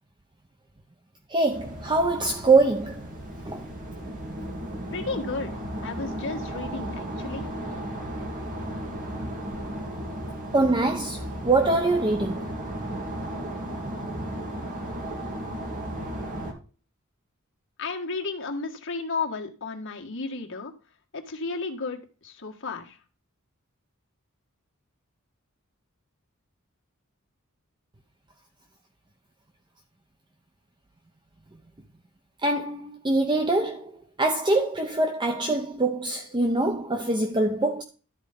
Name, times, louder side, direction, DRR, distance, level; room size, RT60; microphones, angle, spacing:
voice 1, 1.3-3.0 3.5-3.6 10.5-12.4 32.4-33.9 34.2-37.8, right 2 dB, 20° right, 0.8 m, -24 dB
sound 1, 1.5-16.5, right 1 dB, 40° right, 2.3 m, -35 dB
voice 2, 4.9-5.5 5.8-7.4 17.8-20.7 21.1-23.0, left 4 dB, 60° left, 1.7 m, -33 dB
12.5 x 4.5 x 5.2 m
head